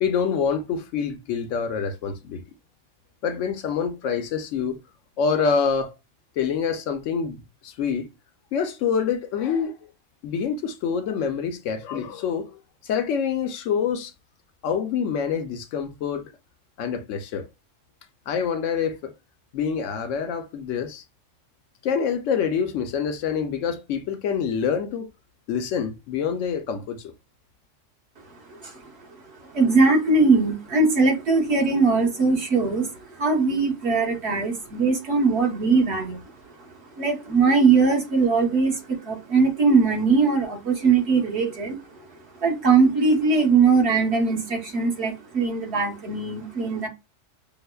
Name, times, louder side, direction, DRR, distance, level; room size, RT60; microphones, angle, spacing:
voice 1, 0.0-2.4 3.2-4.8 5.2-5.9 6.4-8.1 8.5-9.9 10.2-14.1 14.6-16.3 16.8-17.5 18.3-19.1 19.5-21.0 21.8-25.1 25.5-27.1, left 6 dB, 75° left, 0.9 m, -26 dB
voice 2, 28.5-28.9 29.4-36.2 36.6-42.0 42.4-46.9, right 4 dB, 60° right, 1.3 m, -21 dB
5.5 x 2.0 x 2.2 m
omnidirectional pair, 1.3 m